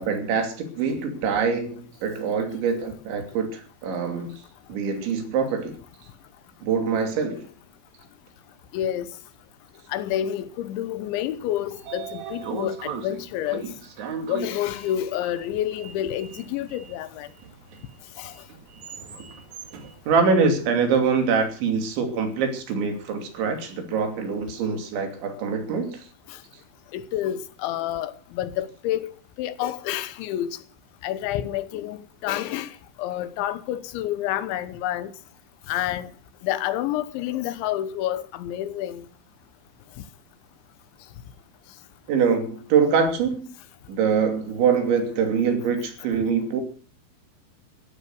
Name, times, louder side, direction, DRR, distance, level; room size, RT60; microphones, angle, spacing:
voice 1, 0.0-4.3 4.7-5.8 6.6-7.5 20.1-26.1 42.1-43.5 43.9-46.6, right 5 dB, 75° right, 5.0 m, -24 dB
voice 2, 8.7-9.2 9.9-13.7 14.3-17.3 18.2-18.3 26.3-26.4 26.9-30.6 31.0-35.1 35.7-36.1 36.4-39.1, left 12 dB, 85° left, 3.3 m, -29 dB
Sliding door, 11.3-21.4, right 5 dB, 50° right, 2.6 m, -39 dB
15.0 x 12.5 x 6.5 m
omnidirectional pair, 5.3 m